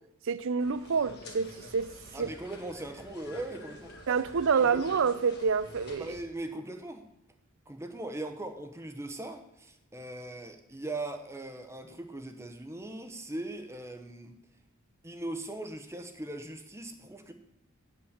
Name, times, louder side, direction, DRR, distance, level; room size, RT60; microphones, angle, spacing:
voice 1, 0.3-1.9 2.2-2.3 4.1-6.1, right 5 dB, 60° right, 0.5 m, -27 dB
sound 1, 0.6-6.2, left 1 dB, 50° left, 1.9 m, -47 dB
voice 2, 2.1-3.9 4.6-4.8 6.0-7.0 7.7-14.3 15.0-17.3, right 2 dB, 15° right, 0.9 m, -40 dB
9.0 x 5.9 x 8.0 m
head